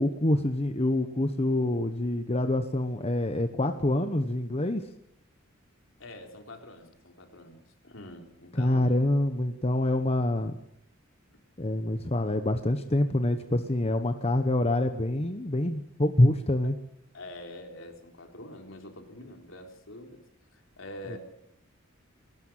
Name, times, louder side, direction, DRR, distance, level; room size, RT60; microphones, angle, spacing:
voice 1, 0.0-4.9 8.5-10.6 11.6-16.8 21.1-21.2, left 1 dB, 30° left, 8 dB, 1.1 m, -26 dB
voice 2, 6.0-9.0 16.6-16.7 17.1-20.2 20.5-21.2, left 1 dB, 70° left, 4 dB, 3.8 m, -45 dB
21.0 x 19.0 x 7.5 m, 0.74 s
head